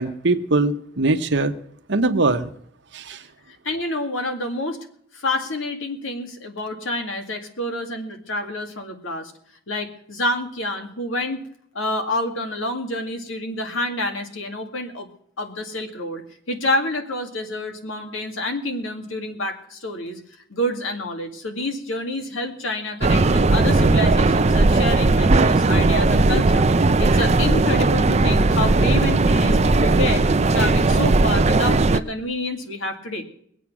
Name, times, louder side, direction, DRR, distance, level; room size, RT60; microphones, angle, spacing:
voice 1, 0.0-1.5 1.9-2.5 2.9-3.2, right 2 dB, 65° right, 7 dB, 1.1 m, -21 dB
voice 2, 3.6-4.8 5.1-9.3 9.7-11.4 11.7-15.1 15.4-16.2 16.5-20.2 20.5-30.2 30.5-33.2, left 1 dB, 85° left, 4 dB, 2.2 m, -28 dB
sound 1, 23.0-32.0, right 3 dB, 35° right, 0.6 m, -17 dB
22.0 x 8.3 x 6.2 m, 0.66 s
head